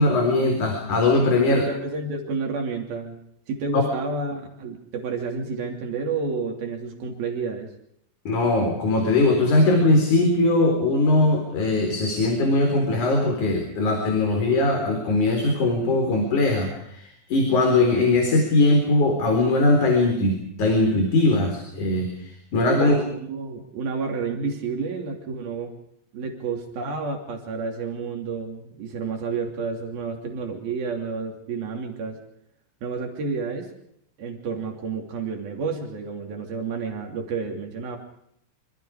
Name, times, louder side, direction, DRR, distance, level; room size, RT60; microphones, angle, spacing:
voice 1, 0.0-1.6 3.7-3.8 8.3-23.0, left 2 dB, 55° left, 3 dB, 5.4 m, -20 dB
voice 2, 1.5-3.2 3.5-7.7 22.8-25.7 26.1-32.2 32.8-33.7 34.2-38.0, right 4 dB, 85° right, 3 dB, 4.9 m, -30 dB
26.5 x 25.5 x 5.0 m, 0.72 s
omnidirectional pair, 4.1 m